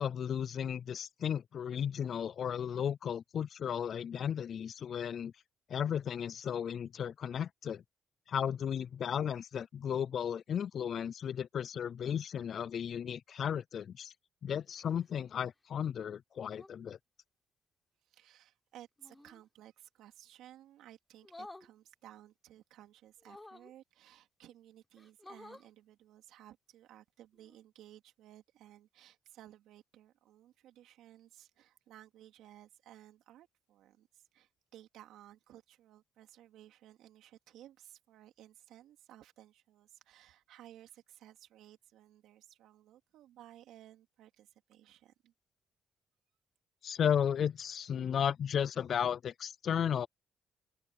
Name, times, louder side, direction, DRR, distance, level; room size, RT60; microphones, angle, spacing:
voice 1, 0.0-5.3 5.7-7.8 8.3-14.1 14.4-17.0 46.8-50.1, left 8 dB, 60° left, 0.4 m, -34 dB
sound 1, 14.7-15.1 16.3-16.8 19.0-19.4 21.2-21.7 23.2-23.7 24.5-24.6 24.9-25.7 27.4-27.6, left 2 dB, 15° left, 5.4 m, -52 dB
voice 2, 18.0-45.3, right 12 dB, 85° right, 3.3 m, -57 dB
open air
cardioid pair, 90°, 0 cm